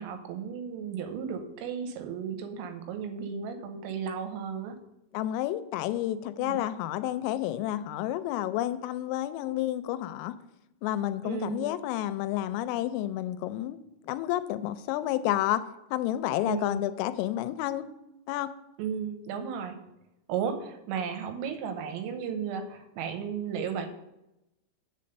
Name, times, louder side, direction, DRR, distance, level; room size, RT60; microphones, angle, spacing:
voice 1, 0.0-4.8 6.4-6.6 11.2-11.7 16.4-16.9 18.8-19.8 20.3-23.9, right 7 dB, 90° right, 7 dB, 3.5 m, -34 dB
voice 2, 5.1-10.3 10.8-13.8 14.1-15.6 15.9-17.8 18.3-18.5, left 13 dB, 85° left, 12 dB, 3.1 m, -30 dB
7.6 x 7.1 x 5.3 m, 0.90 s
omnidirectional pair, 5.9 m